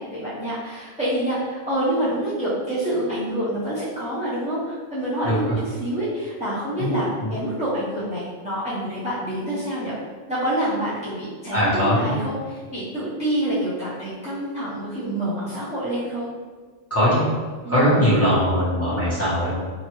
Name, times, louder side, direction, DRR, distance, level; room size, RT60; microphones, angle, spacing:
voice 1, 0.0-9.9 10.3-16.3 17.6-18.0, right 1 dB, 5° right, -13 dB, 0.6 m, -27 dB
voice 2, 5.2-5.5 6.8-6.9 7.2-7.3 11.5-12.1 16.9-17.2 17.7-19.5, equal, 15° left, -12 dB, 1.1 m, -20 dB
3.0 x 2.3 x 3.0 m, 1.5 s
omnidirectional pair, 1.2 m